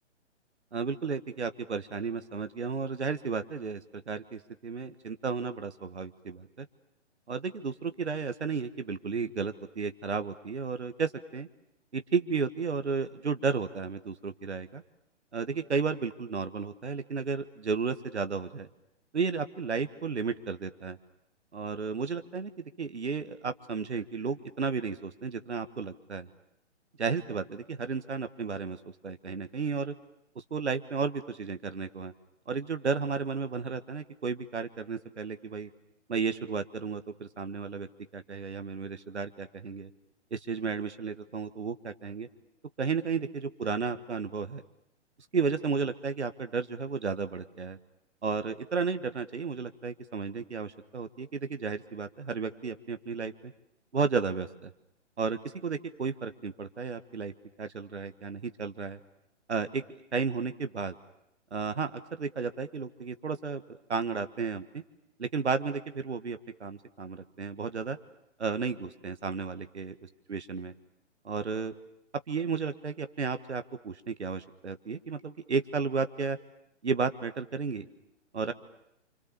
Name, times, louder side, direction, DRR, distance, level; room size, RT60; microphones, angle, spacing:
voice 1, 0.7-6.7 7.3-11.5 11.9-14.8 15.3-18.7 19.1-21.0 21.5-22.5 22.8-26.3 27.0-28.8 29.0-29.9 30.3-32.1 32.5-35.7 36.1-37.9 38.1-39.9 40.3-42.3 42.8-44.6 45.3-47.8 48.2-53.5 53.9-54.7 55.2-57.3 57.6-59.0 59.5-59.8 60.1-61.0 61.5-64.8 65.2-68.0 68.4-69.9 70.3-70.7 71.2-71.7 72.3-76.4 76.8-77.9 78.3-78.5, right 5 dB, 65° right, 10 dB, 1.5 m, -33 dB
28.5 x 26.0 x 7.0 m, 0.81 s
figure-of-eight pair, 130°, 36 cm